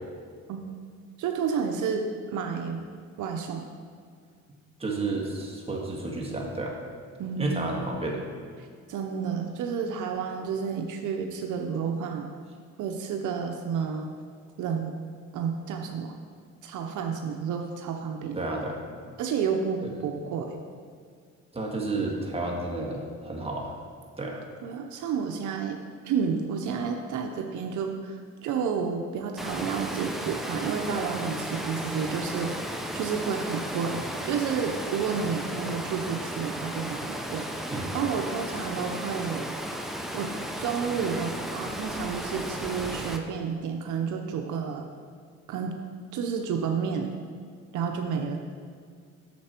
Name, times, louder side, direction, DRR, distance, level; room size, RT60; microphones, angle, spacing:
voice 1, 1.2-2.0 2.3-2.8 3.2-3.7 7.2-7.8 8.9-12.3 12.8-14.1 14.6-14.9 15.3-16.2 16.6-18.5 19.2-20.6 24.6-25.8 26.0-32.6 32.9-39.5 40.1-40.3 40.6-44.8 45.5-45.8 46.1-47.1 47.7-48.4, right 6 dB, 80° right, 3 dB, 0.8 m, -30 dB
voice 2, 4.8-6.8 7.4-8.2 18.3-18.8 19.8-19.9 21.5-23.7 24.2-24.4 37.7-38.0, right 2 dB, 20° right, -1 dB, 1.7 m, -31 dB
Water, 29.4-43.2, equal, ahead, 0.7 m, -34 dB
8.5 x 6.8 x 4.4 m, 2.1 s
cardioid pair, 90°, 30 cm